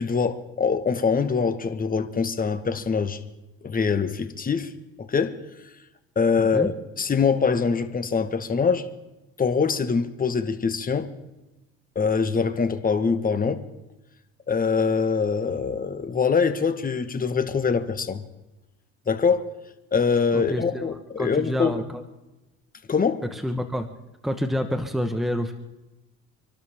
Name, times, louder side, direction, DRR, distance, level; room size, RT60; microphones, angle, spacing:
voice 1, 0.0-3.2 3.6-4.7 5.0-5.4 6.1-6.7 7.0-8.8 9.4-11.1 11.9-13.6 14.5-18.2 19.1-19.4 19.9-21.7 22.9-23.2, left 5 dB, 30° left, 1.6 m, -23 dB
voice 2, 6.4-6.7 20.3-20.8 21.2-22.0 23.3-23.9 24.2-25.5, equal, ahead, 1.4 m, -28 dB
27.0 x 12.5 x 3.7 m
supercardioid pair, 90°, 30 cm